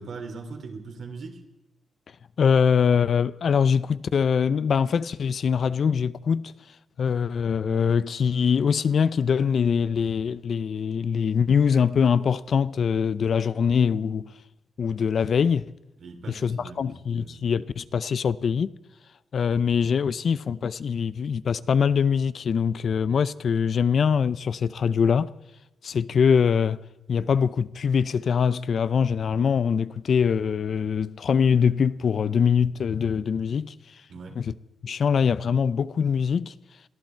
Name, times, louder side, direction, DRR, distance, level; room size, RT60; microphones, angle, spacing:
voice 1, 0.0-1.4 16.0-17.4 34.1-34.4, right 4 dB, 65° right, 3.0 m, -40 dB
voice 2, 2.4-6.5 7.0-14.3 14.8-15.7 16.3-18.7 19.3-25.3 25.8-26.8 27.1-33.7 34.4-34.5 34.8-36.5, left 6 dB, 55° left, 0.5 m, -23 dB
22.0 x 14.5 x 4.5 m
wide cardioid pair, 135°, 0 cm